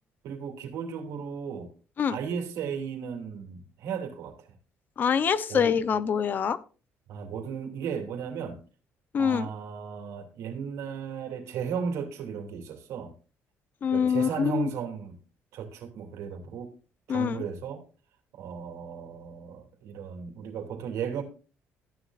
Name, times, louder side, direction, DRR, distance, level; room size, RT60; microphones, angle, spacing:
voice 1, 0.2-1.7 2.1-4.5 5.5-5.7 7.1-8.6 9.2-13.1 13.9-15.2 15.5-16.7 17.1-17.8 18.3-21.2, right 7 dB, 80° right, 2.7 m, -35 dB
voice 2, 5.0-6.6 9.1-9.5 13.8-14.7 17.1-17.4, left 7 dB, 40° left, 0.7 m, -25 dB
14.0 x 10.0 x 2.5 m
cardioid pair, 145°, 5 cm